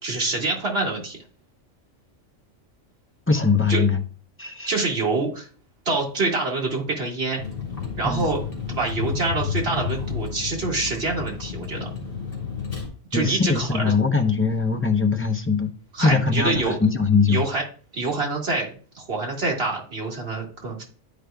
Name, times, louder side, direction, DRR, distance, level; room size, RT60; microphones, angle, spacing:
voice 1, 0.0-1.2 3.7-3.9 4.7-5.5 5.9-7.4 8.0-8.4 8.7-11.9 13.1-13.9 15.9-16.8 17.3-17.6 17.9-20.8, right 3 dB, 50° right, -1 dB, 2.0 m, -26 dB
voice 2, 3.3-4.0 4.4-4.7 8.0-8.3 13.1-15.7 16.0-17.4, left 4 dB, 20° left, 5 dB, 0.3 m, -21 dB
Vehicle, 7.4-12.9, left 7 dB, 50° left, 2.2 m, -31 dB
11.0 x 5.0 x 2.2 m, 0.41 s
omnidirectional pair, 1.3 m